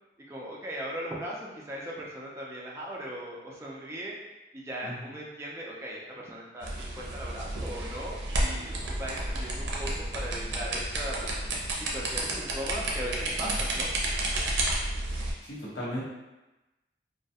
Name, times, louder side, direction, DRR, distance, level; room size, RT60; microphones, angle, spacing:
voice 1, 0.3-4.2 4.5-11.3 11.8-13.9, equal, 15° right, -4 dB, 0.3 m, -38 dB
voice 2, 4.8-5.1 13.4-13.8 15.4-16.0, equal, 75° left, -8 dB, 0.9 m, -37 dB
sound 1, 6.6-15.3, right 1 dB, 90° right, 0.5 m, -31 dB
2.3 x 2.1 x 2.7 m, 1.1 s
head